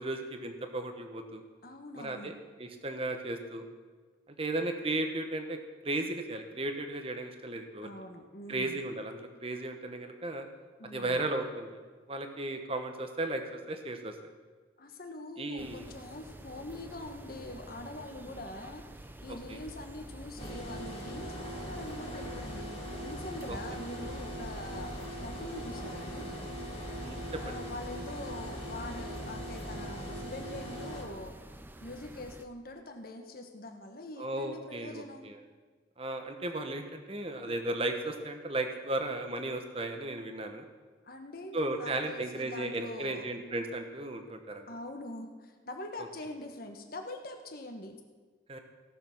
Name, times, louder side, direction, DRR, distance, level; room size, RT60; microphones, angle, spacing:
voice 1, 0.0-1.4 2.0-2.3 2.6-3.7 4.4-5.6 5.8-7.9 8.5-10.5 10.9-11.8 12.1-14.1 15.4-15.9 19.5-19.6 27.0-27.5 34.2-35.3 36.0-40.6 41.5-44.7 48.5-48.6, right 2 dB, 30° right, 5 dB, 1.1 m, -35 dB
voice 2, 1.6-2.4 7.8-8.8 10.8-11.3 14.8-18.9 19.2-22.7 23.0-26.3 27.3-31.4 31.8-35.3 37.4-37.5 41.0-43.3 44.7-48.0, left 2 dB, 50° left, 4 dB, 1.4 m, -44 dB
sound 1, 15.6-32.4, right 1 dB, 10° right, 0.5 m, -47 dB
sound 2, 20.4-31.0, equal, 30° left, 1.9 m, -41 dB
17.0 x 6.8 x 6.1 m, 1.4 s
head